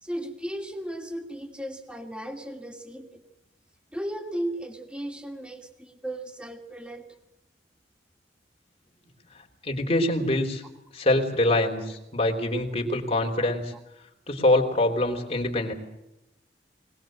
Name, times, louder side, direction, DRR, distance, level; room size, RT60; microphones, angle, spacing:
voice 1, 0.0-3.2 3.9-7.1, right 1 dB, 5° right, 3 dB, 2.8 m, -35 dB
voice 2, 9.4-10.6 10.9-13.7 14.3-15.7, left 1 dB, 35° left, 2 dB, 3.5 m, -24 dB
22.0 x 20.0 x 7.8 m, 0.89 s
head